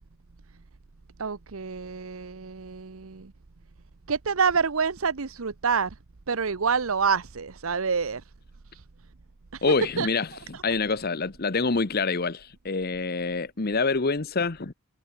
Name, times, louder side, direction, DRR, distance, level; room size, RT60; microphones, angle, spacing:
voice 1, 1.2-3.3 4.1-5.9 6.3-8.2 8.7-8.8 9.5-9.6 10.0-10.1, right 5 dB, 80° right, 0.9 m, -27 dB
voice 2, 9.6-14.7, left 4 dB, 50° left, 1.0 m, -26 dB
head